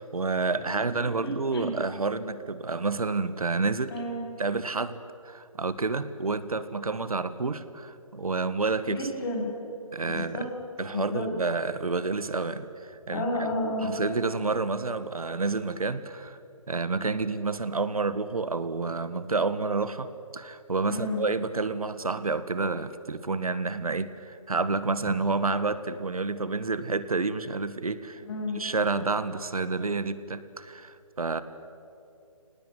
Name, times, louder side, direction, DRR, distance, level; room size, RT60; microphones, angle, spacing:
voice 1, 0.0-3.9 4.4-5.0 5.2-9.1 9.9-10.5 10.8-13.2 13.8-16.4 16.7-28.2 28.5-31.4, right 3 dB, 90° right, 13 dB, 1.6 m, -29 dB
voice 2, 0.7-1.7 3.9-4.2 8.9-9.5 10.1-10.5 10.9-11.3 13.1-13.9 20.8-21.2 28.2-28.6, left 1 dB, 45° left, -1 dB, 7.8 m, -31 dB
25.5 x 19.0 x 9.2 m, 2.7 s
hypercardioid pair, 160°, 18 cm